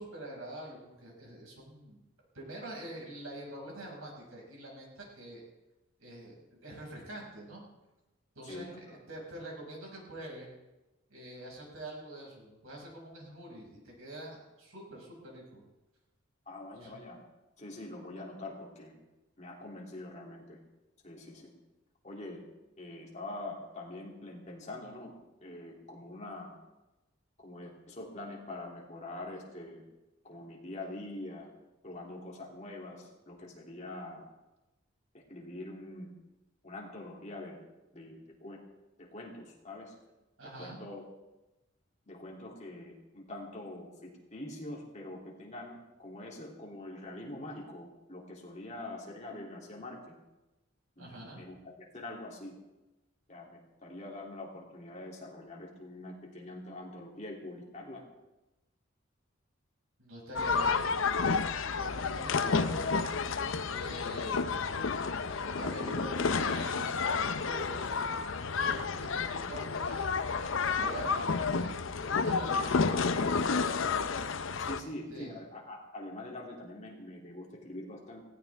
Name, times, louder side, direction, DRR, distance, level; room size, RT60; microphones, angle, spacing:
voice 1, 0.0-2.0 2.3-5.4 6.0-7.6 8.4-10.5 11.1-15.6 16.8-17.0 40.4-40.8 51.0-51.4 60.0-60.9 61.7-62.9 63.7-65.1 65.3-67.0 67.4-70.1 70.6-73.8 74.7-75.4, right 1 dB, 90° right, -2 dB, 5.8 m, -45 dB
voice 2, 8.4-8.8 16.5-17.2 17.6-18.9 19.4-20.6 21.0-21.5 22.0-22.4 22.8-25.1 25.4-26.5 27.4-29.8 30.2-31.5 31.8-34.2 35.1-36.1 36.6-37.6 37.9-38.6 39.0-39.9 40.6-41.0 42.1-50.0 51.0-51.6 51.9-52.6 53.3-58.0 74.6-78.2, left 1 dB, 35° left, -2 dB, 2.9 m, -44 dB
sound 1, 60.4-74.8, left 5 dB, 70° left, 0.6 m, -30 dB
18.0 x 16.5 x 3.5 m, 1.0 s
head